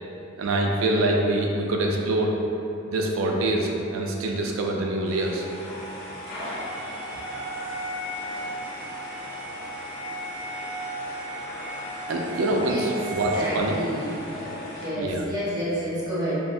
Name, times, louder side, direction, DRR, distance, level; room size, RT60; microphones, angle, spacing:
voice 1, 0.4-2.4 2.9-5.4 6.9-7.2 8.3-8.7 12.1-13.8 15.0-15.3, right 2 dB, 70° right, 0 dB, 0.3 m, -25 dB
sound 1, 5.1-14.8, equal, 85° left, 0.6 m, -35 dB
voice 2, 13.3-16.4, equal, 20° right, -9 dB, 0.6 m, -30 dB
3.1 x 2.0 x 2.5 m, 2.8 s
head